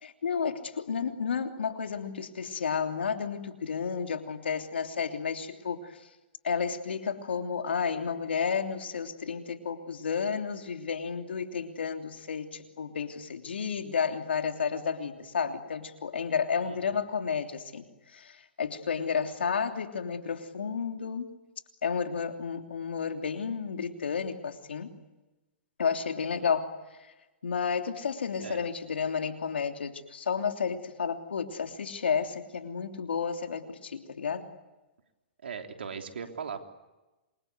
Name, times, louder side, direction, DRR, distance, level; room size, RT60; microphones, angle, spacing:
voice 1, 0.0-5.9 6.4-17.8 18.1-18.3 18.6-21.3 21.8-24.9 25.8-26.7 27.4-34.5, left 6 dB, 80° left, 5 dB, 3.1 m, -31 dB
voice 2, 16.6-17.1 26.4-26.5 28.4-28.7 35.4-36.6, right 6 dB, 80° right, 5 dB, 3.5 m, -39 dB
27.5 x 24.0 x 8.1 m, 1.1 s
hypercardioid pair, 125°, 6 cm